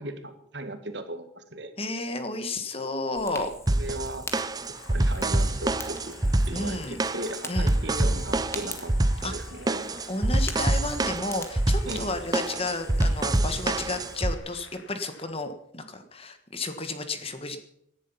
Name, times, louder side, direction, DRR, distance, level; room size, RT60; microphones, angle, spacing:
voice 1, 0.0-1.7 3.7-4.5 4.9-6.2 6.5-8.9 9.2-9.9 11.9-12.1, right 1 dB, 60° right, 8 dB, 1.9 m, -37 dB
voice 2, 1.8-3.5 6.5-7.0 7.5-7.7 9.2-9.3 10.1-17.6, left 2 dB, 30° left, 8 dB, 1.5 m, -32 dB
Fire, 3.2-14.2, left 3 dB, 15° left, 1.7 m, -44 dB
sound 1, 3.7-14.3, right 2 dB, 20° right, 0.6 m, -26 dB
sound 2, 4.7-15.3, left 4 dB, 85° left, 2.3 m, -50 dB
18.0 x 11.0 x 5.8 m, 0.76 s
head